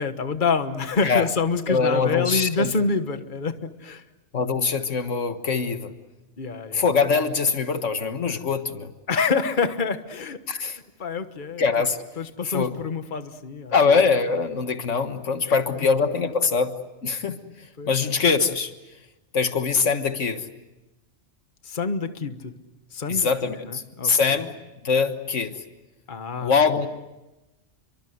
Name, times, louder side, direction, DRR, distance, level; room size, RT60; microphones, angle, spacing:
voice 1, 0.0-4.0 6.4-6.8 9.1-10.4 11.0-11.6 12.2-14.0 15.8-15.9 17.8-17.9 21.6-22.5 22.9-23.3 23.6-24.4 26.1-26.5, left 4 dB, 40° left, 9 dB, 1.5 m, -27 dB
voice 2, 1.7-2.7 4.3-5.9 6.7-8.9 10.5-10.8 11.6-12.0 12.4-12.7 13.7-17.4 17.9-18.7 19.3-20.5 23.1-24.5 24.8-25.6 26.4-26.9, left 5 dB, 80° left, 8 dB, 1.8 m, -23 dB
29.5 x 24.5 x 7.9 m, 1.0 s
omnidirectional pair, 1.3 m